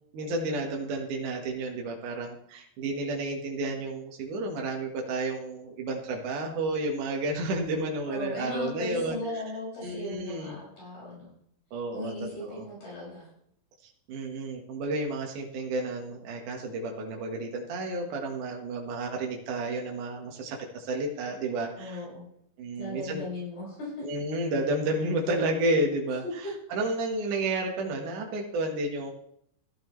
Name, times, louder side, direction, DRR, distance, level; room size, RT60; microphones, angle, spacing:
voice 1, 0.1-9.2 9.8-10.6 11.7-12.7 14.1-22.0 22.6-23.3 24.0-29.1, right 2 dB, 70° right, 1 dB, 2.9 m, -31 dB
voice 2, 8.1-11.3 11.9-13.3 21.8-22.3 22.8-24.1, left 2 dB, 75° left, -7 dB, 7.8 m, -37 dB
15.5 x 12.0 x 3.1 m, 0.70 s
omnidirectional pair, 3.9 m